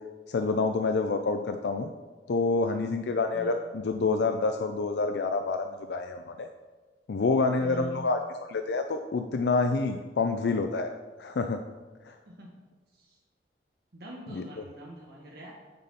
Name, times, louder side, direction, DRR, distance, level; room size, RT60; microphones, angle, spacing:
voice 1, 0.3-1.9 2.3-6.5 7.1-10.9 11.2-11.6 12.1-12.2 14.3-14.4, left 3 dB, 70° left, 7 dB, 0.4 m, -28 dB
voice 2, 7.6-8.2 12.2-12.5 12.9-13.2 13.9-15.5, right 1 dB, 60° right, -2 dB, 1.1 m, -44 dB
8.8 x 4.1 x 5.4 m, 1.3 s
head